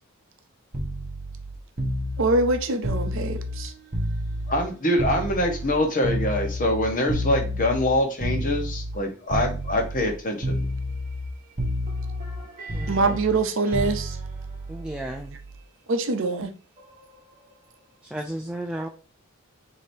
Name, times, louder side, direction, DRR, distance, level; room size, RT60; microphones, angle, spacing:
sound 1, 0.7-4.7 5.0-9.0 9.3-10.1 10.4-11.3 11.6-15.6 16.8-17.0, equal, 40° right, 1.0 m, -30 dB
voice 1, 2.2-3.7 12.9-14.2 15.9-16.5, right 3 dB, 60° right, 0.7 m, -24 dB
voice 2, 4.5-10.6, left 1 dB, 40° left, 1.0 m, -24 dB
voice 3, 12.7-13.2 14.7-15.4 18.0-18.9, right 1 dB, 5° right, 0.3 m, -33 dB
4.9 x 2.9 x 2.7 m
head